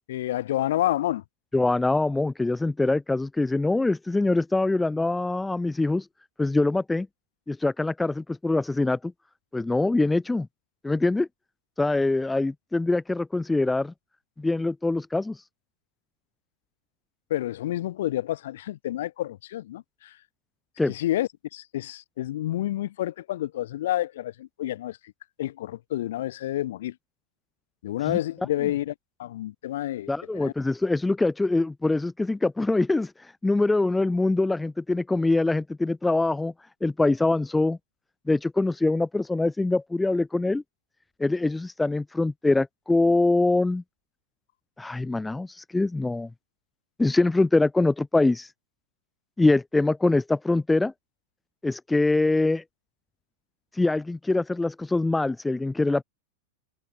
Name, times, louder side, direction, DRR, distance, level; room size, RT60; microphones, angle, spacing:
voice 1, 0.1-1.2 17.3-20.2 20.9-25.0 25.4-27.0 27.8-28.9 29.2-30.1 30.3-30.5, left 13 dB, 55° left, 1.6 m, -29 dB
voice 2, 1.5-6.1 6.4-7.1 7.5-9.1 9.5-10.5 10.8-11.3 11.8-13.9 14.4-15.4 20.8-20.9 28.1-28.2 30.1-33.1 33.4-36.5 36.8-37.8 38.3-40.6 41.2-43.8 44.8-46.3 47.0-48.5 49.4-50.9 51.6-52.6 53.7-56.0, left 2 dB, 5° left, 0.5 m, -24 dB
figure-of-eight pair, 90°, 0 cm